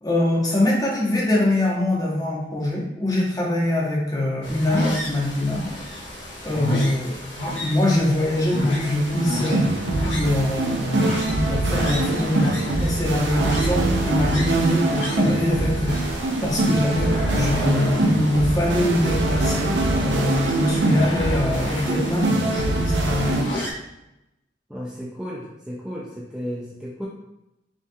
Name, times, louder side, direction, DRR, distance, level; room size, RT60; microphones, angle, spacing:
voice 1, 0.0-5.6 6.4-7.1 7.6-9.6 10.0-23.5, left 1 dB, 20° left, -3 dB, 1.0 m, -23 dB
sound 1, 4.4-23.7, left 1 dB, 80° left, 1.1 m, -32 dB
sound 2, 8.8-23.4, right 2 dB, 70° right, 0.6 m, -23 dB
voice 2, 24.7-27.1, equal, 5° right, -5 dB, 0.4 m, -33 dB
5.2 x 3.3 x 2.3 m, 0.91 s
head